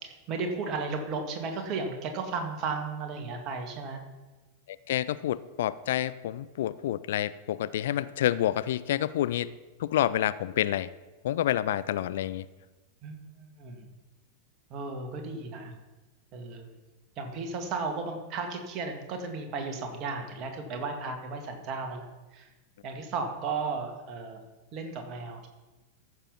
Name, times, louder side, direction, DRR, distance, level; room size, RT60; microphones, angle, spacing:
voice 1, 0.0-4.0 13.0-13.9 14.7-15.7 16.3-16.7 17.2-22.5 22.8-24.4 24.7-25.5, right 4 dB, 35° right, 4 dB, 2.1 m, -35 dB
voice 2, 4.7-9.5 9.8-10.9 11.2-12.5, left 12 dB, 55° left, 16 dB, 0.4 m, -28 dB
14.0 x 6.8 x 5.6 m, 1.2 s
figure-of-eight pair, 90°, 0 cm